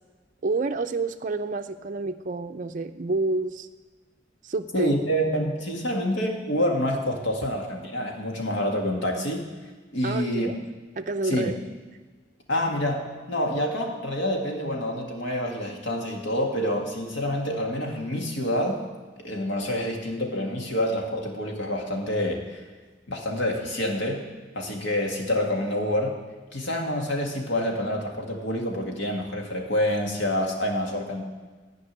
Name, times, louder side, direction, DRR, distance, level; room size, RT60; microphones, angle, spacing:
voice 1, 0.4-3.7 4.4-5.0 10.0-10.6 11.0-11.6, right 3 dB, 45° right, 5 dB, 0.5 m, -28 dB
voice 2, 4.7-9.5 9.9-10.6 11.2-11.6 12.5-18.9 19.2-22.6 23.1-24.3 24.6-26.2 26.5-31.2, equal, 85° left, 1 dB, 2.0 m, -27 dB
14.5 x 5.3 x 9.6 m, 1.4 s
head